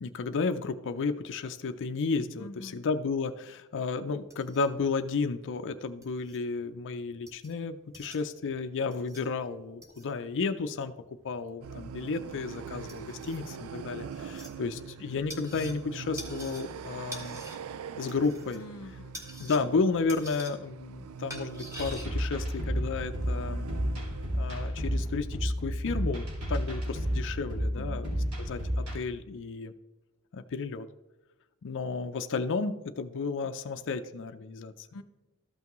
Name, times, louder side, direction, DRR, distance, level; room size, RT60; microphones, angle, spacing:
voice 1, 0.0-10.9 11.2-17.4 18.0-18.6 19.4-23.7 24.3-29.7 30.3-30.9 31.6-34.9, left 4 dB, 55° left, 8 dB, 0.5 m, -32 dB
voice 2, 2.4-2.8 18.5-19.2 27.7-28.1 34.9-35.0, left 1 dB, 90° left, 12 dB, 0.7 m, -45 dB
sound 1, 4.1-22.1, equal, 15° right, 1.6 m, -48 dB
sound 2, 11.6-24.7, right 6 dB, 70° right, 0.4 m, -43 dB
sound 3, 21.8-29.0, equal, 85° right, 2.4 m, -31 dB
13.5 x 5.8 x 3.0 m, 1.1 s
head